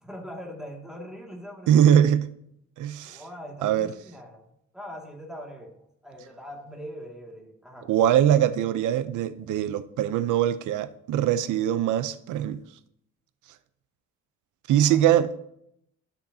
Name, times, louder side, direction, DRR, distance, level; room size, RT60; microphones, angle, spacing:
voice 1, 0.0-1.9 3.1-7.9 14.8-15.0, equal, ahead, 2.1 m, -42 dB
voice 2, 1.7-2.3 2.8-3.2 3.6-3.9 7.9-12.6 14.7-15.4, right 10 dB, 80° right, 0.6 m, -22 dB
13.0 x 6.5 x 2.7 m
cardioid pair, 90°, 30 cm